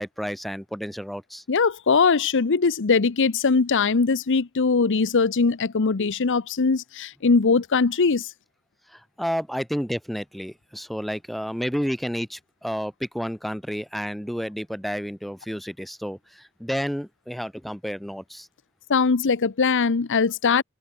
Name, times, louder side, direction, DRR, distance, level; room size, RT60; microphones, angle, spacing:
voice 1, 0.0-1.4 8.9-18.5, equal, ahead, 1.2 m, -31 dB
voice 2, 1.5-8.3 18.9-20.6, left 4 dB, 60° left, 0.7 m, -21 dB
head